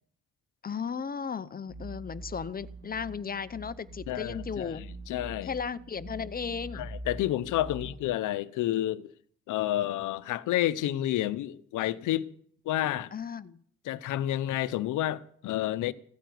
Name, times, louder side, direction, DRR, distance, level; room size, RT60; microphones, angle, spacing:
voice 1, 0.6-4.8 5.4-6.9 7.7-7.8 13.1-13.6, left 6 dB, 30° left, 0.7 m, -35 dB
sound 1, 1.7-8.2, right 1 dB, 35° right, 2.1 m, -44 dB
voice 2, 4.1-5.5 6.7-9.1 9.5-12.3 12.7-13.1 13.9-15.9, left 13 dB, 85° left, 0.8 m, -30 dB
16.0 x 9.2 x 9.3 m
cardioid pair, 90°, 30 cm